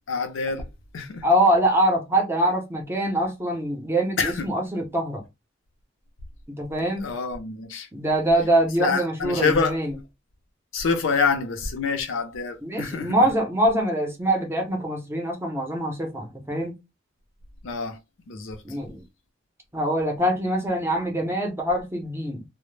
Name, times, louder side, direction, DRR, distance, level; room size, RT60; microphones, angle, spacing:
voice 1, 0.1-0.6 0.9-1.2 4.2-4.5 7.0-7.9 8.8-9.8 10.7-13.1 17.6-18.0 18.3-18.6, left 4 dB, 80° left, 0.5 m, -26 dB
voice 2, 1.2-5.2 6.5-7.1 7.9-10.0 12.6-16.8 18.6-19.0 19.7-22.4, right 1 dB, 10° right, 0.6 m, -24 dB
2.0 x 2.0 x 3.1 m
head